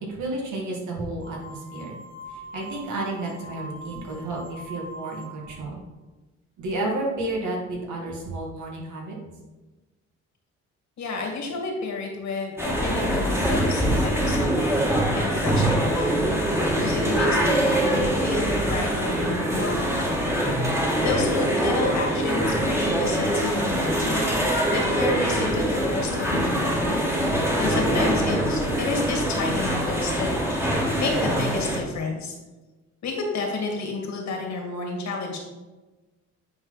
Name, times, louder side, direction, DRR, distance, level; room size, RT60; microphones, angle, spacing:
voice 1, 0.1-1.9 2.3-5.8 6.6-9.2, right 2 dB, 75° right, -1 dB, 2.0 m, -31 dB
sound 1, 1.2-5.6, equal, 30° left, 1.3 m, -42 dB
voice 2, 11.0-14.8 15.2-16.3 16.8-20.2 20.6-27.1 27.6-32.3 33.0-35.4, left 4 dB, 65° left, 1 dB, 2.0 m, -31 dB
sound 2, 12.6-31.8, right 1 dB, 10° right, 1.6 m, -23 dB
8.7 x 3.9 x 4.0 m, 1.2 s
cardioid pair, 90°, 30 cm